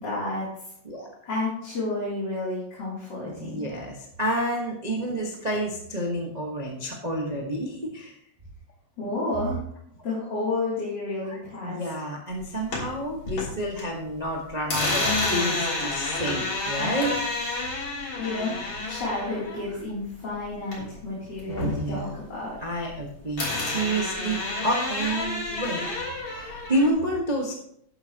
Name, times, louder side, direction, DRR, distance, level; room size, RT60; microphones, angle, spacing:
voice 1, 0.0-0.5 1.3-3.7 9.0-9.6 10.0-11.8 18.2-22.6, left 2 dB, 35° left, -7 dB, 3.6 m, -31 dB
voice 2, 3.2-8.2 11.3-15.0 15.3-17.2 19.7-19.8 21.5-22.1 22.6-27.5, right 1 dB, 35° right, -1 dB, 0.6 m, -29 dB
sound 1, 12.4-13.8 14.1-21.0 21.4-23.0 23.4-26.9, left 2 dB, 70° left, 4.6 m, -30 dB
12.0 x 9.6 x 3.0 m, 0.71 s
omnidirectional pair, 3.3 m